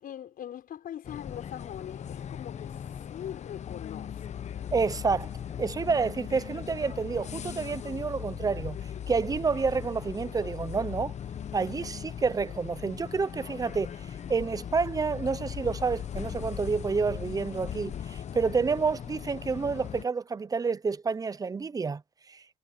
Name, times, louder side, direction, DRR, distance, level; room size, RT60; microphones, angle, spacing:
voice 1, 0.0-2.8 3.1-4.5, left 10 dB, 60° left, 6.3 m, -42 dB
sound 1, 1.0-20.0, left 9 dB, 45° left, 1.1 m, -39 dB
voice 2, 4.7-5.3 5.6-8.8 9.1-11.1 11.5-13.9 14.3-22.0 22.3-22.4, right 5 dB, 20° right, 0.8 m, -29 dB
cardioid pair, 110°, 17 cm